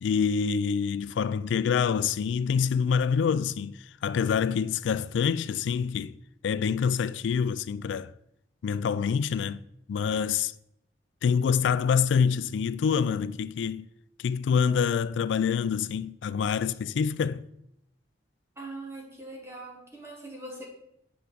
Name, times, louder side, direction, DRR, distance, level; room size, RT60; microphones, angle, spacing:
voice 1, 0.0-6.2 6.4-8.1 8.6-9.6 9.9-10.5 11.2-13.9 14.2-17.5, left 6 dB, 80° left, 0.3 m, -26 dB
voice 2, 18.6-20.6, right 2 dB, 15° right, 1.1 m, -41 dB
8.3 x 4.6 x 3.9 m
head